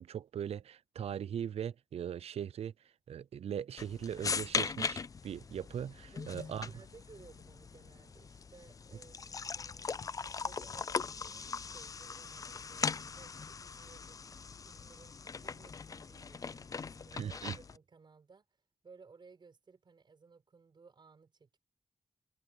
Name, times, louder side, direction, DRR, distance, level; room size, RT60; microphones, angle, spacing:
voice 1, 0.0-2.7 3.1-6.7 17.1-17.6, right 9 dB, 85° right, 0.4 m, -39 dB
sound 1, 3.8-17.8, left 5 dB, 35° left, 0.4 m, -40 dB
voice 2, 6.1-10.0 10.4-14.2 14.6-18.5 18.8-21.6, right 5 dB, 45° right, 7.4 m, -59 dB
wide cardioid pair, 155°, 10 cm